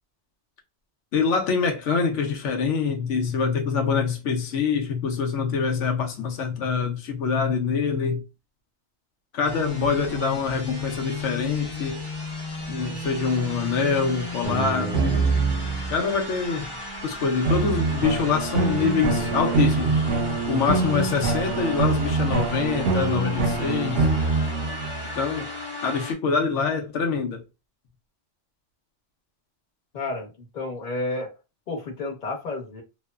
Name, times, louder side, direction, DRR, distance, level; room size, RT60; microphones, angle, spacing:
voice 1, 1.1-8.2 9.3-12.0 12.7-15.3 15.9-16.8 17.0-20.1 20.5-24.1 25.1-25.5 25.8-27.4, left 5 dB, 85° left, 0.9 m, -25 dB
sound 1, 9.4-26.1, left 2 dB, 25° left, 0.8 m, -35 dB
sound 2, 14.4-16.1 17.4-25.2, right 4 dB, 90° right, 0.9 m, -25 dB
voice 2, 29.9-31.3 31.7-32.8, left 2 dB, 45° left, 1.0 m, -31 dB
2.9 x 2.0 x 2.2 m
omnidirectional pair, 1.2 m